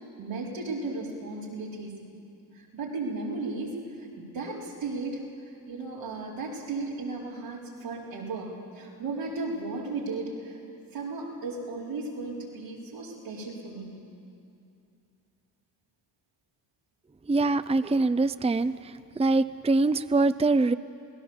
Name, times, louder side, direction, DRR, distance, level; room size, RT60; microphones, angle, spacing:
voice 1, 0.2-1.9 2.5-5.2 5.6-10.6 10.9-13.9, right 3 dB, 90° right, -5 dB, 4.3 m, -35 dB
voice 2, 17.3-18.8 19.2-20.7, right 3 dB, 15° right, 13 dB, 0.6 m, -23 dB
27.0 x 18.0 x 7.2 m, 2.6 s
supercardioid pair, 45°, 44 cm